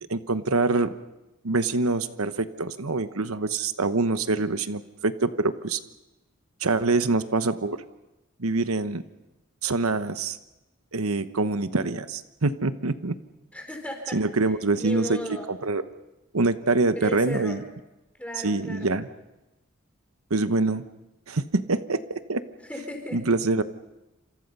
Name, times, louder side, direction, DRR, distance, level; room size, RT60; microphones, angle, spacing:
voice 1, 0.1-0.9 1.4-5.8 6.6-7.8 8.4-9.0 9.6-10.4 10.9-13.2 14.1-15.8 16.3-17.6 18.4-19.1 20.3-20.8 21.3-22.4 23.1-23.6, right 3 dB, 85° right, 11 dB, 1.1 m, -25 dB
voice 2, 13.5-15.5 17.0-17.6 18.2-18.9 22.6-23.2, left 1 dB, 5° left, 3 dB, 4.4 m, -36 dB
28.5 x 27.0 x 5.5 m, 0.98 s
head